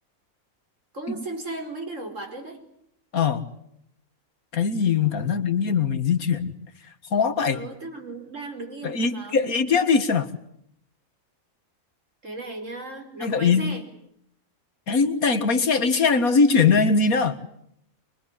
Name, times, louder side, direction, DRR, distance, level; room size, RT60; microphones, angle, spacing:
voice 1, 0.9-2.6 5.2-5.4 7.5-9.6 12.2-13.8, right 2 dB, 60° right, 4 dB, 5.2 m, -36 dB
voice 2, 4.5-6.5 7.1-7.6 8.8-10.3 13.2-13.6 14.9-17.4, left 5 dB, 85° left, 10 dB, 2.2 m, -21 dB
24.0 x 24.0 x 9.9 m, 0.74 s
omnidirectional pair, 1.5 m